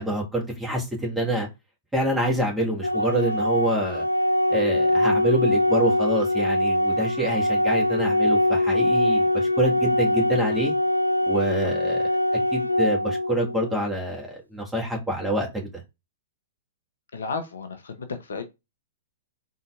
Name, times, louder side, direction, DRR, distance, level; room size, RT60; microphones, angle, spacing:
voice 1, 0.0-1.5 1.9-4.1 4.5-10.7 11.2-15.7, right 1 dB, 5° right, 1.6 m, -26 dB
Organ, 2.8-13.8, left 1 dB, 90° left, 0.4 m, -23 dB
voice 2, 17.1-18.4, left 4 dB, 65° left, 0.8 m, -33 dB
3.9 x 3.8 x 2.5 m
figure-of-eight pair, 110°, 0 cm